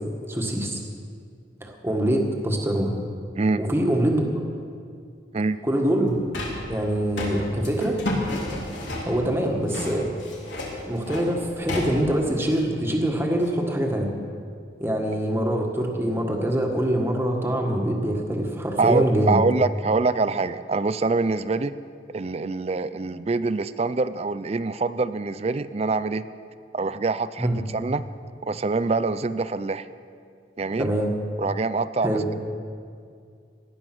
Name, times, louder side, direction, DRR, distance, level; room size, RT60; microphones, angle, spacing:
voice 1, 0.3-0.8 1.6-2.9 3.6-4.2 5.6-6.1 6.7-8.0 9.0-10.1 10.9-14.1 14.8-19.4 27.4-27.6 30.8-31.1 32.0-32.2, right 1 dB, 15° right, 1 dB, 1.7 m, -24 dB
sound 1, 6.0-13.5, left 1 dB, 85° left, 3.4 m, -32 dB
voice 2, 18.8-21.7 22.1-26.2 26.7-28.0 28.4-29.9 30.6-30.9 31.4-32.3, right 3 dB, 35° right, 14 dB, 0.4 m, -25 dB
18.0 x 11.5 x 6.2 m, 2.3 s
head